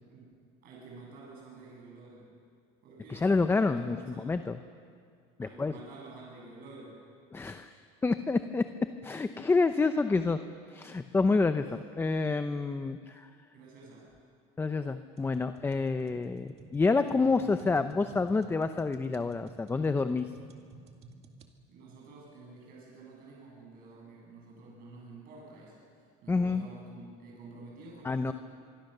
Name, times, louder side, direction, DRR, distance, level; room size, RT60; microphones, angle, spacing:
voice 1, 0.0-0.4 0.6-2.3 2.8-4.3 5.4-7.0 13.5-14.1 21.7-25.9 26.2-28.3, right 3 dB, 55° right, -3 dB, 7.6 m, -50 dB
voice 2, 3.1-4.6 5.4-5.7 7.3-8.7 9.0-10.4 10.7-13.3 14.6-20.3 26.3-26.7 28.0-28.3, left 3 dB, 15° left, 9 dB, 0.7 m, -28 dB
sound 1, 15.2-21.5, right 4 dB, 35° right, 2.1 m, -52 dB
25.0 x 24.0 x 6.8 m, 2.2 s
cardioid pair, 130°, 18 cm